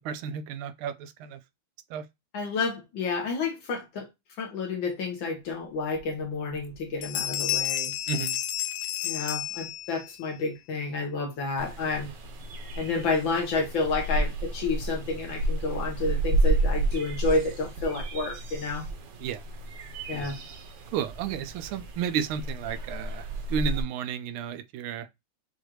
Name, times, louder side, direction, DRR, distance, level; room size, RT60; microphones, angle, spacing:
voice 1, 0.0-1.4 1.9-2.0 8.1-8.4 19.2-19.4 20.1-20.3 20.9-25.1, right 8 dB, 80° right, 1.4 m, -32 dB
voice 2, 2.3-4.1 4.4-7.9 9.0-12.1 12.8-18.9 20.1-20.4, left 3 dB, 65° left, 1.8 m, -30 dB
Bell, 5.9-6.0 6.5-6.8 7.0-10.2, left 12 dB, 90° left, 0.9 m, -31 dB
sound 1, 11.6-23.8, right 2 dB, 65° right, 1.4 m, -31 dB
6.2 x 2.5 x 3.0 m
omnidirectional pair, 2.4 m